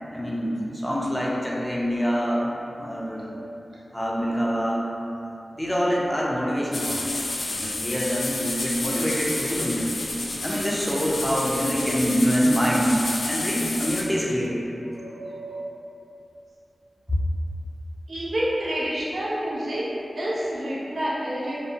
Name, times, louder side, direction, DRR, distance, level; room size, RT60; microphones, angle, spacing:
voice 1, 0.1-2.5 2.7-3.4 3.9-4.9 5.5-7.0 7.5-9.9 10.4-13.0 13.2-14.6, equal, 5° left, -4 dB, 0.5 m, -25 dB
sound 1, 6.7-14.0, left 2 dB, 80° left, 0.3 m, -30 dB
voice 2, 14.9-15.7 18.1-21.6, equal, 75° right, -7 dB, 0.5 m, -29 dB
2.6 x 2.0 x 2.7 m, 2.8 s
cardioid pair, 45°, 0 cm